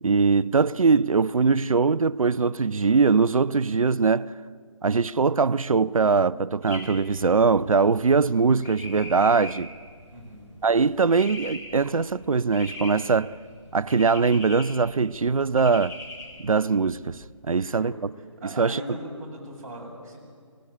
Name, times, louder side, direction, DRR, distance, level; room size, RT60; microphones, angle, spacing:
voice 1, 0.0-4.3 4.8-9.7 10.6-13.3 13.7-16.0 16.4-17.2 17.5-18.1 18.6-18.8, right 4 dB, 85° right, 0.6 m, -21 dB
sound 1, 6.6-17.3, left 2 dB, 10° left, 4.4 m, -42 dB
voice 2, 10.1-10.4 17.5-18.0 18.4-20.2, right 1 dB, 30° right, 6.8 m, -39 dB
24.0 x 18.0 x 8.8 m
figure-of-eight pair, 155°, 17 cm